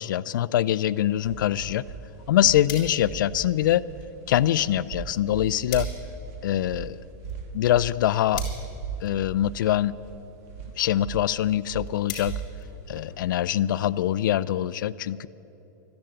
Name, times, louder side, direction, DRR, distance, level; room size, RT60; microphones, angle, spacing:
voice 1, 0.0-1.8 2.3-3.9 4.3-5.9 6.4-7.0 7.5-8.4 9.0-9.9 10.8-12.3 12.9-15.3, left 12 dB, 90° left, 18 dB, 0.4 m, -24 dB
sound 1, 0.9-14.1, right 6 dB, 45° right, 1.9 m, -38 dB
sound 2, 2.0-13.4, left 8 dB, 40° left, 3.5 m, -46 dB
13.5 x 10.5 x 9.0 m, 3.0 s
supercardioid pair, 160°, 10 cm